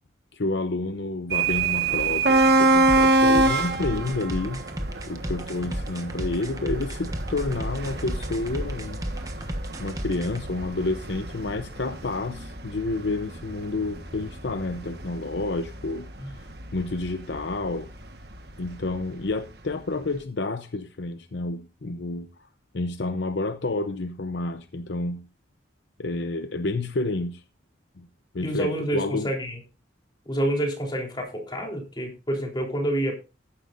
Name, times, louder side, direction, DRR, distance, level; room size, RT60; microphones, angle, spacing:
voice 1, 0.3-4.6 5.1-9.5 9.8-16.5 16.7-17.9 18.6-22.5 22.7-25.3 26.0-27.4 28.0-28.1 28.3-29.3, left 2 dB, 65° left, 9 dB, 0.7 m, -30 dB
sound 1, 1.3-19.0, right 2 dB, 55° right, 1.4 m, -26 dB
sound 2, 2.9-10.4, right 1 dB, 20° right, 1.2 m, -33 dB
voice 2, 28.4-29.6 30.3-33.1, right 1 dB, 25° left, 0 dB, 3.7 m, -28 dB
15.0 x 11.5 x 2.6 m, 0.30 s
head